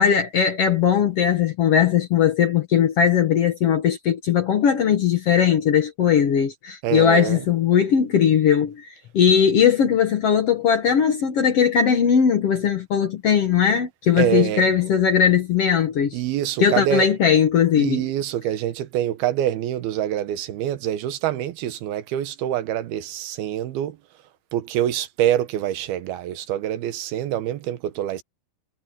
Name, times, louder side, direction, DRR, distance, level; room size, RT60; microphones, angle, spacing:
voice 1, 0.0-16.2 16.6-18.0, left 8 dB, 60° left, 1.7 m, -19 dB
voice 2, 6.8-7.5 14.2-14.7 16.1-17.1 17.8-24.0 24.5-28.2, right 12 dB, 90° right, 3.1 m, -25 dB
omnidirectional pair, 4.3 m